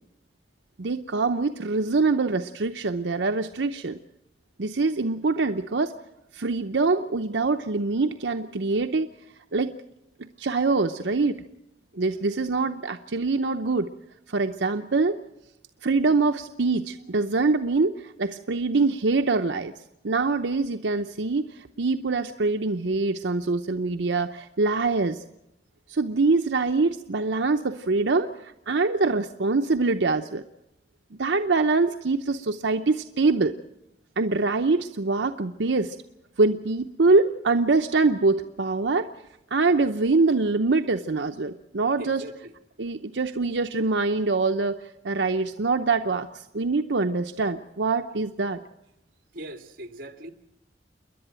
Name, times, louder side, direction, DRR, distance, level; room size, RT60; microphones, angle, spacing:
voice 1, 0.8-4.0 4.6-5.9 6.3-9.1 9.5-9.7 10.4-11.4 12.0-13.9 14.3-15.1 15.8-19.7 20.0-25.2 25.9-30.4 31.1-33.5 34.2-36.0 36.4-39.1 39.5-42.2 42.8-44.8 45.0-48.6, right 3 dB, 85° right, 7 dB, 0.8 m, -24 dB
voice 2, 11.9-12.2 42.0-42.5 49.3-50.3, right 1 dB, 55° right, 6 dB, 1.8 m, -41 dB
29.0 x 11.0 x 9.0 m, 0.86 s
head